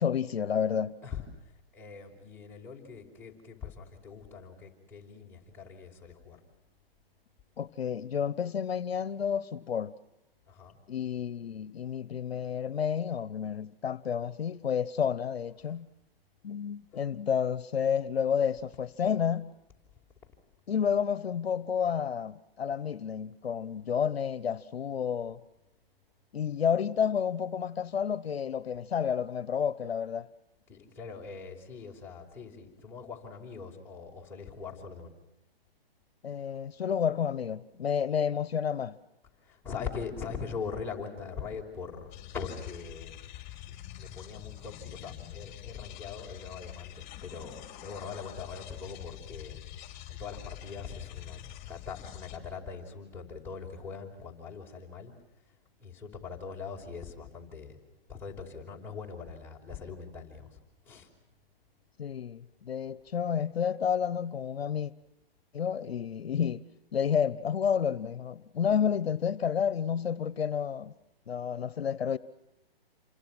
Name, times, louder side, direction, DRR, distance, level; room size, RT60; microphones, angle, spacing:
voice 1, 0.0-1.0 7.6-9.9 10.9-15.9 16.4-19.5 20.7-25.4 26.3-30.3 36.2-39.0 62.0-64.9 65.5-66.6 66.9-70.9 71.3-72.2, left 7 dB, 80° left, 1.2 m, -30 dB
voice 2, 1.0-6.4 10.5-10.8 15.6-15.8 30.7-35.1 39.4-43.2 44.0-51.4 51.7-55.1 55.8-57.8 58.1-61.1, left 5 dB, 5° left, 5.3 m, -42 dB
sound 1, 42.1-52.4, left 13 dB, 25° left, 3.7 m, -46 dB
29.0 x 24.5 x 6.2 m
hypercardioid pair, 145°, 30 cm